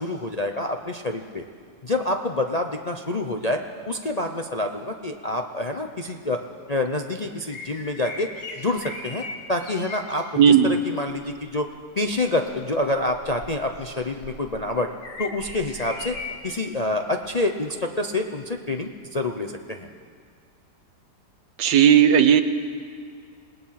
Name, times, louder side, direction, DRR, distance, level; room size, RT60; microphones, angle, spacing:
voice 1, 0.0-1.4 1.8-6.4 6.7-8.3 8.6-14.9 15.2-16.2 16.4-19.9, left 2 dB, 35° left, 4 dB, 0.6 m, -27 dB
sound 1, 7.5-10.2 11.1-11.4 12.0-16.7 17.2-17.4 19.2-19.3, left 3 dB, 60° left, 2.9 m, -39 dB
voice 2, 10.4-10.7 21.6-22.4, right 8 dB, 80° right, 11 dB, 1.6 m, -15 dB
28.0 x 19.0 x 5.9 m, 2.1 s
omnidirectional pair, 1.9 m